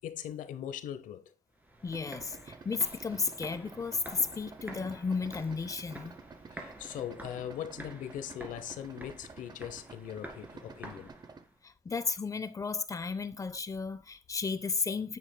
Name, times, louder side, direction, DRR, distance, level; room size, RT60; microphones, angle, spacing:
voice 1, 0.0-1.3 6.5-11.1, left 10 dB, 85° left, 0.8 m, -40 dB
sound 1, 1.5-11.6, right 1 dB, 15° right, 2.1 m, -49 dB
voice 2, 1.8-6.2 11.6-15.2, left 4 dB, 25° left, 0.7 m, -33 dB
Idling, 1.9-11.5, right 5 dB, 30° right, 0.7 m, -51 dB
9.5 x 7.5 x 2.2 m
cardioid pair, 110°, 13 cm